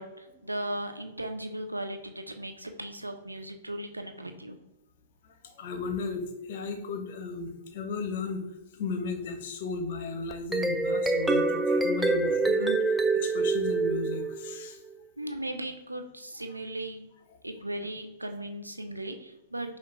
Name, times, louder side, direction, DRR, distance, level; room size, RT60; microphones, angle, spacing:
voice 1, 0.0-4.6 15.2-17.0 17.4-19.8, right 1 dB, 85° right, 6 dB, 0.4 m, -37 dB
voice 2, 5.4-8.4 8.7-12.8 13.1-14.8, left 4 dB, 50° left, 6 dB, 0.6 m, -35 dB
sound 1, 10.3-14.7, right 3 dB, 10° right, 0.3 m, -26 dB
5.6 x 2.3 x 3.0 m, 0.95 s
figure-of-eight pair, 105°, 0 cm